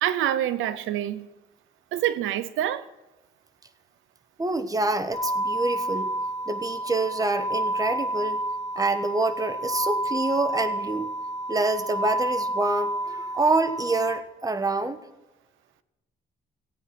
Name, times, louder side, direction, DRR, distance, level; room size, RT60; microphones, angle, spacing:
voice 1, 0.0-1.3 1.9-2.8, right 12 dB, 85° right, 0.7 m, -26 dB
voice 2, 4.4-6.1 6.5-8.4 8.8-11.1 11.5-15.0, right 2 dB, 20° right, 1.2 m, -26 dB
sound 1, 5.1-14.2, right 1 dB, 30° left, 3.1 m, -29 dB
16.5 x 8.9 x 6.0 m
cardioid pair, 90°, 20 cm